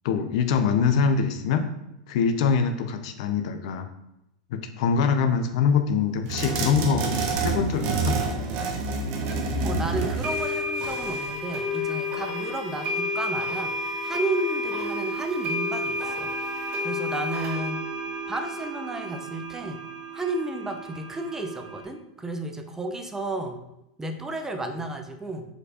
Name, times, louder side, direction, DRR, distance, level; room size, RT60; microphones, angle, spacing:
voice 1, 0.0-1.7 2.1-3.9 4.5-7.1 7.4-8.2, left 6 dB, 65° left, 8 dB, 0.7 m, -24 dB
sound 1, 6.3-11.3, right 3 dB, 55° right, 1.2 m, -28 dB
sound 2, 9.3-9.4 10.2-21.8, left 1 dB, 40° right, 2.4 m, -31 dB
voice 2, 9.6-13.8 14.0-16.3 16.8-17.8 18.3-19.8 20.1-23.6 24.0-25.5, right 2 dB, 10° right, 5 dB, 0.8 m, -32 dB
5.1 x 4.2 x 4.9 m, 0.84 s
hypercardioid pair, 110°, 4 cm